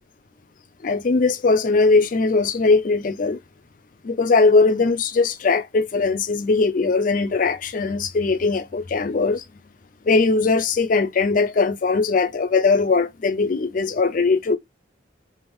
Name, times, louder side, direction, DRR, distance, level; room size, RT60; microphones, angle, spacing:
voice 1, 0.8-3.4 4.0-9.4 10.0-14.6, left 4 dB, 45° left, 0.4 m, -20 dB
3.5 x 2.3 x 3.0 m
head